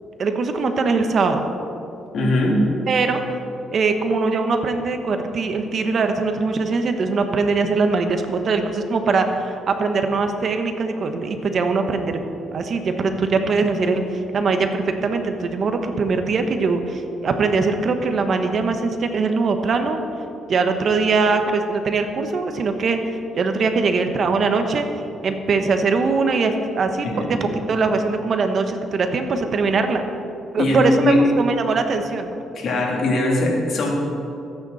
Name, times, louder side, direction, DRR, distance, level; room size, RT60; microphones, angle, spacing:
voice 1, 0.2-1.4 2.9-3.2 3.7-20.0 20.5-24.9 25.2-30.0 30.5-32.3, right 4 dB, 55° right, 6 dB, 1.2 m, -21 dB
voice 2, 2.1-2.6 27.0-27.5 30.6-31.2 32.5-34.0, left 1 dB, 60° left, -2 dB, 3.4 m, -20 dB
22.0 x 9.1 x 4.3 m, 2.7 s
cardioid pair, 90°, 0 cm